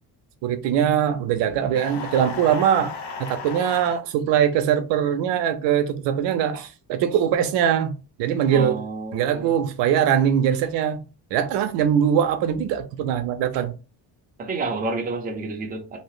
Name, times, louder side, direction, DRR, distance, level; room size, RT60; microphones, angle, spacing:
voice 1, 0.4-2.9 3.2-8.8 9.1-11.0 11.3-13.7, right 9 dB, 85° right, 0.6 m, -22 dB
sound 1, 1.7-4.0, left 4 dB, 85° left, 0.9 m, -34 dB
voice 2, 8.5-9.5 14.4-16.0, right 3 dB, 20° right, 0.5 m, -29 dB
2.8 x 2.1 x 3.0 m
cardioid pair, 155°, 41 cm